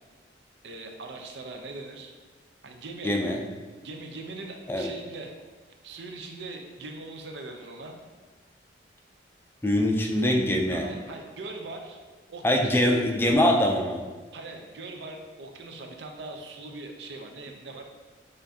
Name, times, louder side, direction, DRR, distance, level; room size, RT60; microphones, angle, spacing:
voice 1, 0.6-2.1 2.6-3.1 3.8-5.3 5.8-8.0 10.7-12.0 12.3-13.0 14.3-17.8, right 2 dB, 75° right, 3 dB, 0.6 m, -41 dB
voice 2, 3.0-3.4 4.7-4.9 9.6-10.9 12.4-14.0, left 1 dB, 15° left, 1 dB, 0.3 m, -23 dB
6.8 x 2.5 x 2.7 m, 1.4 s
head